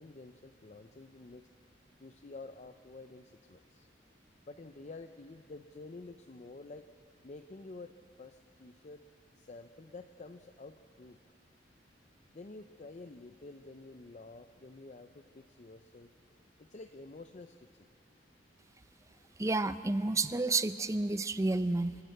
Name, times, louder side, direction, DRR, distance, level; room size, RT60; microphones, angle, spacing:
voice 1, 0.0-1.5 2.0-3.9 4.4-6.9 7.2-7.9 8.2-9.0 9.3-11.2 12.3-16.1 16.6-17.9 19.1-19.3, left 3 dB, 40° left, 7 dB, 0.6 m, -50 dB
voice 2, 19.4-22.0, right 2 dB, 15° right, 13 dB, 0.5 m, -30 dB
26.5 x 13.0 x 8.0 m, 2.5 s
head